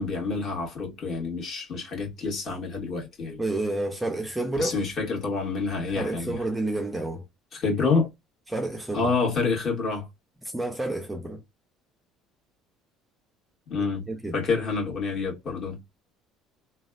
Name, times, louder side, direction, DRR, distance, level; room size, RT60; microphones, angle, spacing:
voice 1, 0.0-3.4 4.6-6.4 7.5-8.1 8.9-10.1 13.7-14.1 14.3-15.8, left 4 dB, 40° left, 1.8 m, -28 dB
voice 2, 3.4-4.8 5.9-7.2 8.5-9.1 10.4-11.4 14.1-14.3, right 2 dB, 5° right, 0.5 m, -29 dB
3.2 x 2.3 x 2.3 m
cardioid pair, 150°, 0 cm